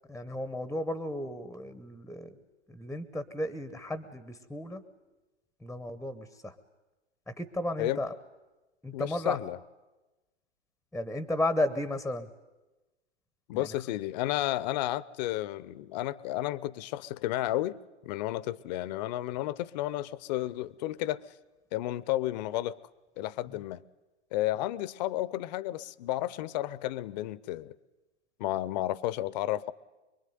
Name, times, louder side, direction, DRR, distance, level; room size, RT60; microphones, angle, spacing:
voice 1, 0.1-2.4 2.7-4.8 5.6-6.5 7.4-8.1 8.8-9.4 10.9-12.3 13.5-13.7, left 1 dB, ahead, 13 dB, 1.0 m, -33 dB
voice 2, 8.9-9.6 13.5-21.2 21.7-22.8 23.2-23.8 24.3-27.8 28.4-29.7, left 15 dB, 35° left, 19 dB, 0.9 m, -32 dB
24.5 x 22.5 x 9.5 m, 1.1 s
hypercardioid pair, 120°, 36 cm